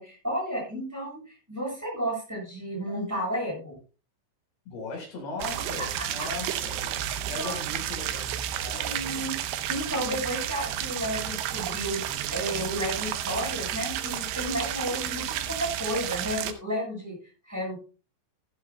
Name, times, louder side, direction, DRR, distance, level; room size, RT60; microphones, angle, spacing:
voice 1, 0.0-3.8 5.8-6.0 7.4-7.5 8.7-9.3 9.7-17.1 17.5-17.8, equal, 5° right, 6.8 m, -32 dB
voice 2, 4.7-7.0 7.3-8.2 8.6-9.3, left 3 dB, 60° left, 6.3 m, -38 dB
sound 1, 5.4-16.5, right 11 dB, 85° right, 2.2 m, -32 dB
15.0 x 13.0 x 2.2 m
omnidirectional pair, 5.6 m